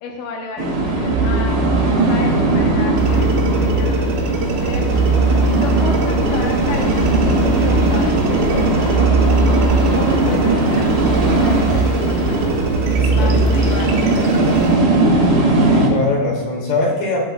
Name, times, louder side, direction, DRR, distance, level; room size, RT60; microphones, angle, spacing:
voice 1, 0.0-1.6 2.0-9.0 9.8-10.9 11.2-12.7 13.1-14.7, left 4 dB, 85° left, 1 dB, 1.9 m, -32 dB
sound 1, 0.6-15.9, right 2 dB, 50° right, 1.3 m, -18 dB
sound 2, 1.1-13.7, right 2 dB, 20° right, 3.8 m, -21 dB
sound 3, 3.0-14.8, right 4 dB, 70° right, 3.6 m, -28 dB
voice 2, 12.9-13.4 15.6-17.3, left 2 dB, 60° left, -2 dB, 4.4 m, -21 dB
15.5 x 10.5 x 2.3 m, 1.3 s
omnidirectional pair, 5.3 m